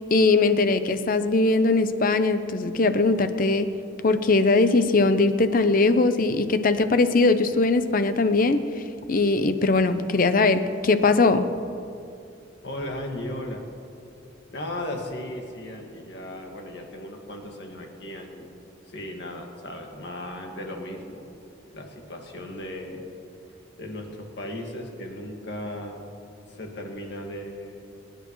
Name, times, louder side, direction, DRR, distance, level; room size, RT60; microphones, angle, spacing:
voice 1, 0.1-3.7 4.0-8.6 9.1-11.5, left 3 dB, 50° left, 10 dB, 0.7 m, -20 dB
voice 2, 12.6-13.6 14.5-18.5 18.9-23.1 23.8-26.1 26.5-27.9, left 1 dB, 65° left, 1 dB, 1.9 m, -36 dB
25.0 x 10.5 x 3.1 m, 2.5 s
head